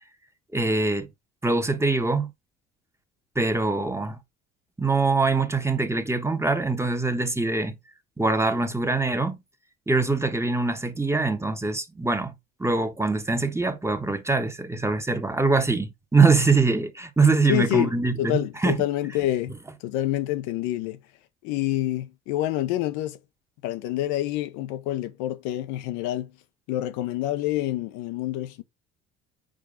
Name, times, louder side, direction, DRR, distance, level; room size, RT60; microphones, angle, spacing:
voice 1, 0.5-1.1 1.4-2.3 3.3-4.2 4.8-7.8 8.2-9.4 9.9-12.3 12.6-18.7, right 3 dB, 10° right, 1.2 m, -23 dB
voice 2, 17.5-17.9 18.2-19.5 19.8-21.0 21.4-23.2 23.6-26.3 26.7-28.6, left 14 dB, 70° left, 0.8 m, -27 dB
5.1 x 4.7 x 3.8 m
hypercardioid pair, 65°, 30 cm